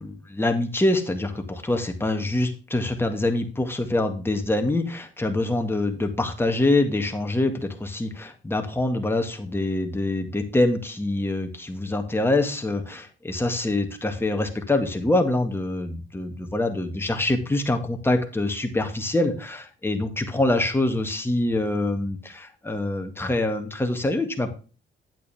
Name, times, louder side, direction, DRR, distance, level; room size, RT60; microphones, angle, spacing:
voice 1, 0.0-24.5, left 2 dB, 10° left, 5 dB, 2.0 m, -25 dB
9.1 x 8.4 x 3.6 m, 0.35 s
cardioid pair, 90°, 20 cm